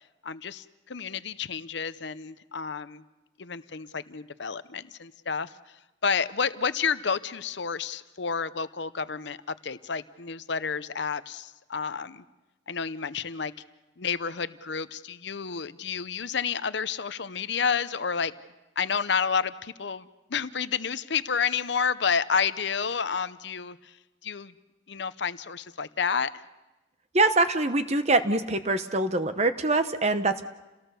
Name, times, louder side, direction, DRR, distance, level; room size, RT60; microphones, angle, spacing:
voice 1, 0.2-3.0 3.4-5.5 6.0-12.2 12.7-13.5 14.0-18.3 18.8-24.0 24.2-24.5 24.9-26.3, left 6 dB, 60° left, 14 dB, 0.7 m, -30 dB
voice 2, 27.1-30.5, right 2 dB, 35° right, 10 dB, 0.9 m, -24 dB
29.0 x 18.0 x 6.9 m, 1.1 s
head